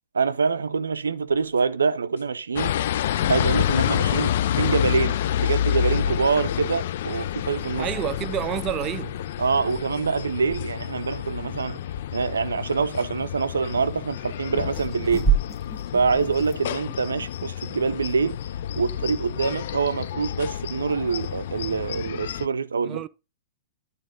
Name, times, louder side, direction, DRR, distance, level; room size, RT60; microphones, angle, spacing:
voice 1, 0.1-2.8 3.3-7.9 9.4-11.8 12.1-15.3 15.9-18.4 18.7-23.1, right 5 dB, 85° right, 0.5 m, -25 dB
sound 1, 1.3-1.8 2.2-2.3 2.8-5.0 5.3-6.8 7.1-7.2 7.8-7.9 8.1-9.5, right 4 dB, 80° left, 1.3 m, -48 dB
sound 2, 2.6-22.5, left 11 dB, 60° left, 0.3 m, -28 dB
sound 3, 5.5-18.8, right 5 dB, 10° left, 1.0 m, -34 dB
voice 2, 7.8-9.1 22.8-23.1, right 11 dB, 30° right, 0.4 m, -29 dB
9.5 x 3.9 x 5.1 m
hypercardioid pair, 115°, 0 cm